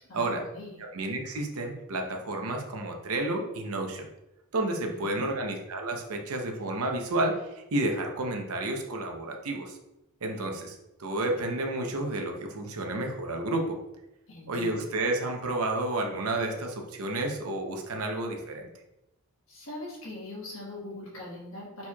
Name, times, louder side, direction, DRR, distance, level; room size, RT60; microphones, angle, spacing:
voice 1, 0.1-0.8 4.8-5.3 14.3-14.9 19.5-21.9, left 2 dB, 65° left, -4 dB, 1.5 m, -41 dB
voice 2, 0.9-4.1 4.5-9.8 10.2-13.8 14.5-18.7, right 2 dB, 75° right, 3 dB, 0.7 m, -31 dB
4.5 x 4.2 x 2.3 m, 0.91 s
head